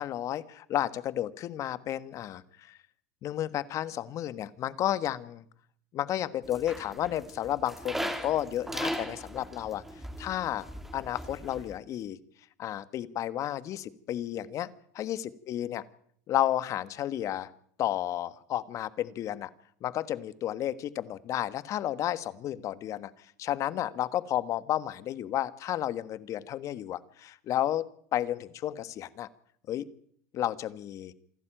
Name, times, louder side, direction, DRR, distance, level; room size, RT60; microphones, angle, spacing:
voice 1, 0.0-2.8 3.2-5.3 5.9-9.8 10.2-10.6 10.9-12.2 12.6-14.7 14.9-15.8 16.3-17.5 17.8-19.5 19.8-23.1 23.4-29.3 29.7-29.8 30.3-31.1, left 12 dB, 40° left, 15 dB, 1.4 m, -32 dB
sound 1, 6.4-11.8, right 1 dB, 5° right, 2.9 m, -38 dB
27.5 x 12.0 x 9.1 m, 0.65 s
supercardioid pair, 125°, 8 cm